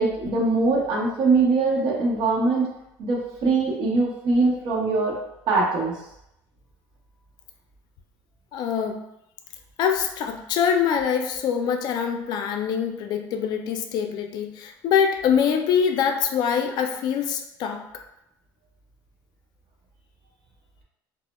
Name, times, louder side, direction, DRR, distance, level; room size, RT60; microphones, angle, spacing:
voice 1, 0.0-2.7 3.0-5.2 5.5-6.0, right 3 dB, 60° right, -3 dB, 0.7 m, -22 dB
voice 2, 8.5-9.0 9.8-18.0, left 7 dB, 60° left, 5 dB, 0.3 m, -24 dB
2.1 x 2.0 x 2.9 m, 0.82 s
cardioid pair, 115°, 8 cm